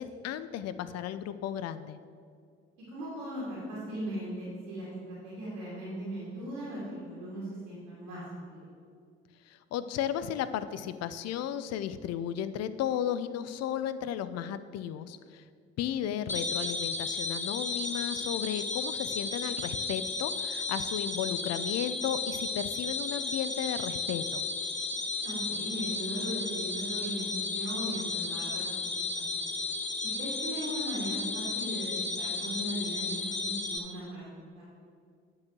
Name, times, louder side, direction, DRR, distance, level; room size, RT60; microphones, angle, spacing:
voice 1, 0.0-2.0 9.5-15.4 15.8-24.4, left 10 dB, 50° left, 13 dB, 0.6 m, -34 dB
voice 2, 2.9-8.6 25.2-28.8 29.1-29.6 30.1-31.9 32.2-34.6, right 1 dB, 75° right, -8 dB, 2.7 m, -38 dB
sound 1, 16.3-33.8, left 3 dB, 20° left, 1.1 m, -34 dB
9.4 x 4.8 x 7.6 m, 2.2 s
figure-of-eight pair, 50°, 32 cm